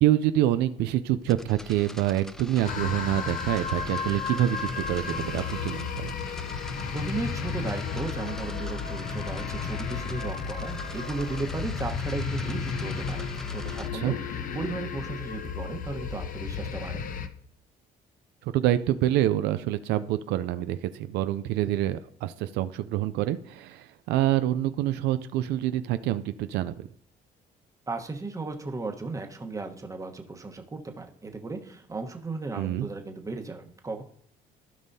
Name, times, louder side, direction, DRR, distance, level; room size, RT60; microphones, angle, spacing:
voice 1, 0.0-6.1 13.9-14.1 18.4-26.9 32.6-32.9, right 13 dB, 85° right, 12 dB, 0.4 m, -26 dB
sound 1, 1.2-13.9, left 1 dB, 5° left, 0.4 m, -43 dB
sound 2, 2.6-17.3, left 6 dB, 55° left, 0.7 m, -33 dB
voice 2, 6.9-17.0 27.9-34.0, right 3 dB, 20° right, 4 dB, 1.2 m, -35 dB
16.0 x 5.3 x 2.7 m, 0.62 s
cardioid pair, 110°, 17 cm